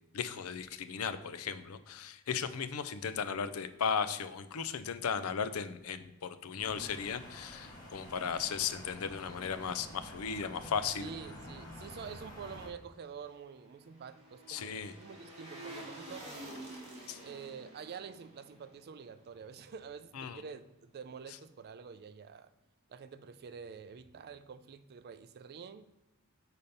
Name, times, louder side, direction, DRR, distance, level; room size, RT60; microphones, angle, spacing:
voice 1, 0.1-11.1 14.5-14.9 17.1-17.2 20.1-20.4, left 6 dB, 80° left, 12 dB, 0.5 m, -36 dB
sound 1, 6.6-12.7, equal, 20° left, 2.0 m, -49 dB
voice 2, 11.0-16.3 17.2-22.5 22.9-25.8, right 6 dB, 45° right, 12 dB, 0.4 m, -47 dB
sound 2, 12.8-20.1 20.4-20.5, right 1 dB, 30° right, 1.7 m, -50 dB
6.8 x 4.2 x 5.3 m, 1.0 s
head